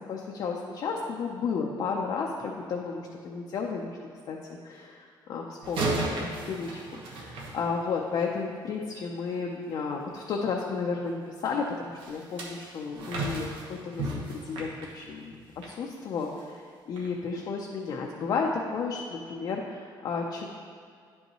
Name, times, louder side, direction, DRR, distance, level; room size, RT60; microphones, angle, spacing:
voice 1, 0.1-4.0 4.3-15.4 15.7-20.5, left 5 dB, 50° left, -1 dB, 0.5 m, -33 dB
sound 1, 5.6-8.2 12.0-15.8 16.2-16.4 17.0-17.1, right 2 dB, 75° right, 1.2 m, -34 dB
10.0 x 5.4 x 3.0 m, 2.1 s
cardioid pair, 170°, 9 cm